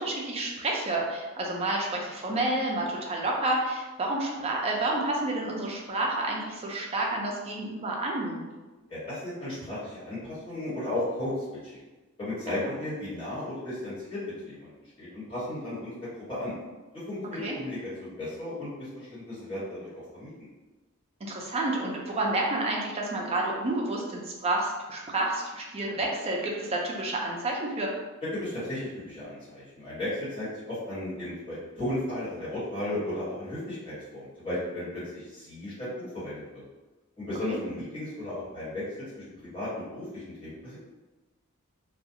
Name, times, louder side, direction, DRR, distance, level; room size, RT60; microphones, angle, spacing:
voice 1, 0.0-8.5 12.5-12.7 17.4-17.6 21.2-27.9 37.5-37.6, right 2 dB, 30° right, -1 dB, 0.4 m, -30 dB
voice 2, 8.9-11.3 11.6-11.8 12.2-14.2 14.4-14.7 15.0-15.9 16.3-16.5 17.1-20.5 28.3-36.4 37.2-38.8 39.2-40.8, left 1 dB, 25° left, -11 dB, 1.4 m, -35 dB
2.3 x 2.3 x 2.7 m, 1.2 s
head